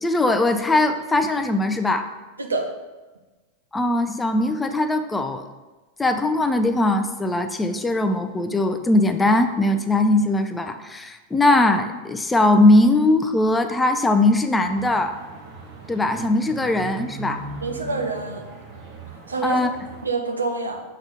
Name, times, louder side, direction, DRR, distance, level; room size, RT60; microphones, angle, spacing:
voice 1, 0.0-2.1 3.7-5.4 6.0-15.1 15.9-17.4 19.4-19.7, left 2 dB, 10° left, 8 dB, 0.5 m, -20 dB
sound 1, 14.6-20.1, right 3 dB, 40° right, 1.3 m, -39 dB
voice 2, 17.6-18.4 19.3-19.6 20.0-20.8, right 3 dB, 75° right, 4 dB, 0.8 m, -26 dB
5.9 x 4.4 x 5.0 m, 1.2 s
figure-of-eight pair, 90°, 0 cm